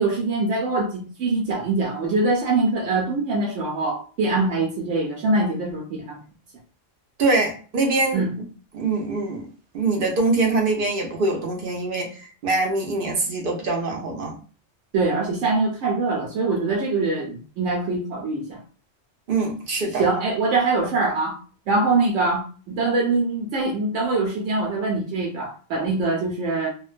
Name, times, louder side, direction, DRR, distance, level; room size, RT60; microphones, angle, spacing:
voice 1, 0.0-6.2 8.1-8.3 14.9-18.6 19.9-21.4 21.7-26.7, right 3 dB, 85° right, -1 dB, 1.0 m, -23 dB
voice 2, 7.2-8.2 8.7-9.5 9.7-14.4 19.3-20.0, right 3 dB, 60° right, 2 dB, 0.6 m, -23 dB
2.4 x 2.1 x 2.4 m, 0.39 s
omnidirectional pair, 1.2 m